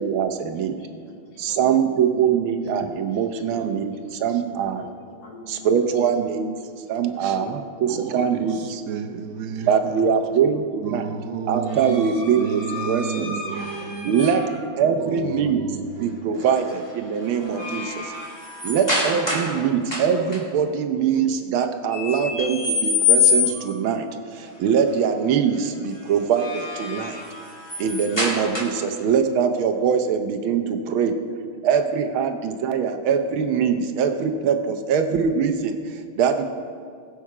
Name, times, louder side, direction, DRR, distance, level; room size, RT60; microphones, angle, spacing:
voice 1, 0.0-0.8 1.4-4.9 5.5-6.6 6.9-8.8 9.7-11.1 11.5-13.4 14.0-14.5 14.8-15.6 16.0-18.1 18.6-24.1 24.3-27.2 27.8-31.2 31.6-36.4, right 7 dB, 75° right, 7 dB, 1.7 m, -23 dB
voice 2, 0.7-2.1 3.7-5.8 6.9-7.7 8.1-8.6 8.9-9.0 9.7-10.5 19.1-19.5, left 2 dB, 55° left, 1 dB, 2.3 m, -43 dB
voice 3, 4.1-4.4 6.6-6.7 7.2-7.4 7.9-10.1 10.8-14.4 14.8-16.1, right 7 dB, 60° right, 6 dB, 0.8 m, -32 dB
sound 1, 11.7-14.6 16.4-16.7 17.1-19.6 19.9-20.4 21.9-23.8 26.1-29.0, left 4 dB, 10° left, 2.2 m, -26 dB
20.5 x 6.9 x 4.8 m, 2.2 s
omnidirectional pair, 2.3 m